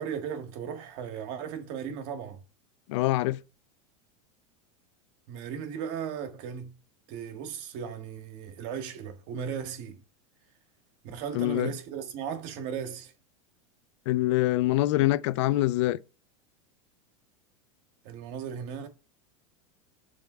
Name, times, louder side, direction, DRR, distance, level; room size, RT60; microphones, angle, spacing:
voice 1, 0.0-2.4 5.3-6.7 7.1-10.0 11.0-13.1 18.0-18.9, right 7 dB, 55° right, 1.5 m, -36 dB
voice 2, 2.9-3.4 11.3-11.7 14.1-16.0, left 16 dB, 65° left, 0.4 m, -24 dB
7.0 x 3.4 x 5.4 m
supercardioid pair, 125°, 16 cm